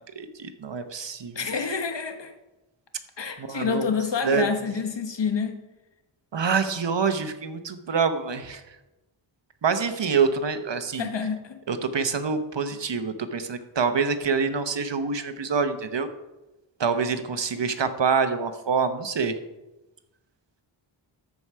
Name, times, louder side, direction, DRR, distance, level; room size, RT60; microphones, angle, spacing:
voice 1, 0.0-1.4 3.4-3.8 4.2-4.4 6.3-8.6 9.6-11.1 11.7-16.1 16.8-19.4, right 5 dB, 60° right, 9 dB, 1.0 m, -26 dB
voice 2, 1.3-2.3 3.2-5.6 11.0-11.6, left 5 dB, 55° left, 6 dB, 1.3 m, -28 dB
13.5 x 4.8 x 5.6 m, 1.0 s
wide cardioid pair, 60°, 50 cm